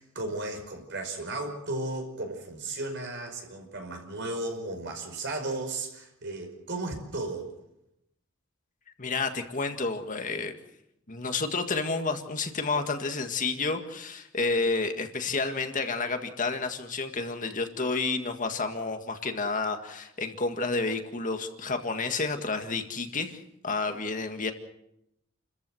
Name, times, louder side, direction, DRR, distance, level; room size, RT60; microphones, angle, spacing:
voice 1, 0.0-7.5, right 2 dB, 60° right, 4 dB, 5.3 m, -35 dB
voice 2, 9.0-10.5 11.1-23.4 23.6-24.5, left 3 dB, 40° left, 6 dB, 1.9 m, -30 dB
29.5 x 14.5 x 7.8 m, 0.82 s
head